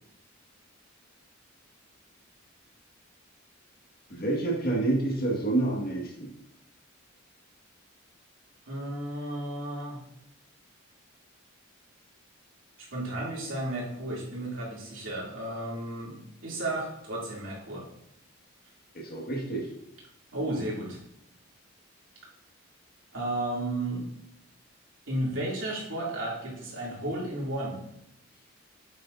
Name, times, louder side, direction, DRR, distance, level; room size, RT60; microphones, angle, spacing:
voice 1, 4.1-6.3 18.9-19.7, right 2 dB, 45° left, -1 dB, 2.0 m, -28 dB
voice 2, 8.7-10.0 12.9-16.2 16.4-17.8 20.3-21.0 23.1-24.1 25.1-27.8, right 1 dB, 65° right, -5 dB, 3.0 m, -33 dB
9.0 x 8.3 x 2.7 m, 0.77 s
head